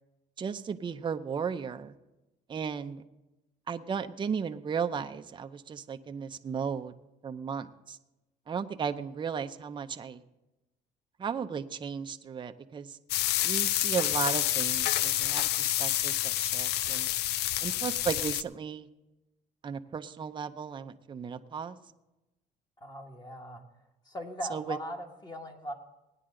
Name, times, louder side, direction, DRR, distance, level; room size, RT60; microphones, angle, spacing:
voice 1, 0.4-1.9 2.5-3.0 3.7-6.9 7.2-8.0 8.5-10.2 11.2-12.9 13.4-17.1 17.6-18.9 19.6-21.8 24.5-24.8, right 6 dB, 30° right, 8 dB, 0.6 m, -35 dB
sound 1, 13.1-18.4, left 13 dB, 75° left, 0.4 m, -28 dB
voice 2, 22.8-23.6 24.0-25.7, equal, 25° left, 2 dB, 1.5 m, -39 dB
18.0 x 9.9 x 3.8 m, 0.98 s
cardioid pair, 110°, 17 cm